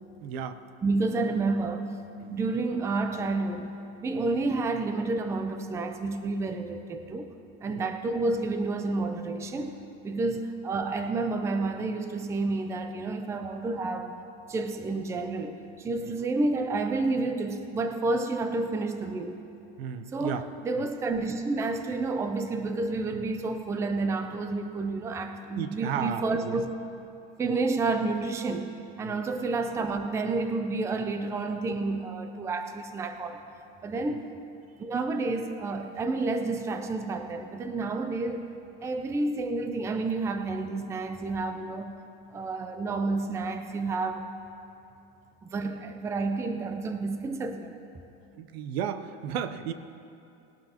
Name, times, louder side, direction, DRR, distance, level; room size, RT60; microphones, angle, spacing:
voice 1, 0.2-0.6 2.2-2.3 7.7-7.9 10.3-10.4 16.0-16.2 19.8-20.5 20.8-20.9 23.1-23.2 25.5-26.6 27.4-27.5 29.0-29.2 48.3-49.7, right 8 dB, 85° right, 11 dB, 0.9 m, -34 dB
voice 2, 0.8-2.0 2.3-3.7 4.0-7.3 7.6-14.1 14.5-19.4 20.1-26.7 27.4-28.7 29.0-33.4 33.8-34.3 34.8-38.5 38.8-41.9 42.3-44.3 45.4-47.8, right 3 dB, 10° right, 7 dB, 0.4 m, -30 dB
19.5 x 12.0 x 2.9 m, 2.7 s
supercardioid pair, 155°, 30 cm